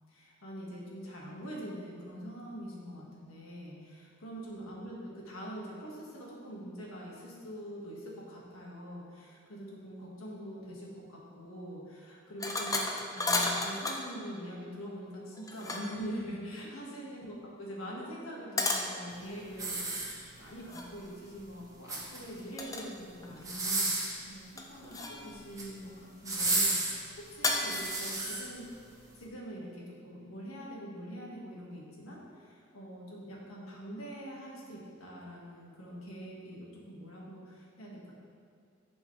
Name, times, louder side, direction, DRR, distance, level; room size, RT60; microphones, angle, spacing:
voice 1, 0.1-12.8 13.1-25.9 26.2-28.7 29.2-38.1, equal, 85° left, -4 dB, 1.7 m, -44 dB
sound 1, 12.4-14.1 15.3-16.1 18.6-18.9 20.7-20.9 22.6-22.9 23.2-23.8 24.6-25.3 27.4-28.0, left 2 dB, 15° left, 0.6 m, -33 dB
sound 2, 19.5-20.6 21.7-22.4 23.4-24.2 25.3-25.7 26.2-28.4 29.0-29.1, right 2 dB, 15° right, 1.2 m, -32 dB
10.5 x 5.3 x 3.3 m, 2.3 s
head